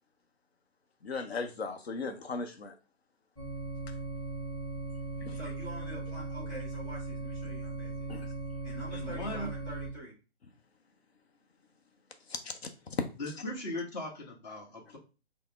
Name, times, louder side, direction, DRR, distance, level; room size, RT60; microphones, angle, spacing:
voice 1, 1.0-2.8 5.2-5.4 8.1-8.3 12.3-12.6 12.9-13.0, left 4 dB, 65° left, 6 dB, 0.7 m, -36 dB
sound 1, 3.3-9.9, right 2 dB, 15° left, 1.0 m, -38 dB
voice 2, 5.3-8.3 8.6-10.2, equal, ahead, -15 dB, 0.3 m, -46 dB
voice 3, 8.9-9.5 13.2-15.0, left 1 dB, 40° left, 1 dB, 1.2 m, -38 dB
5.6 x 2.0 x 3.4 m, 0.33 s
hypercardioid pair, 150°, 33 cm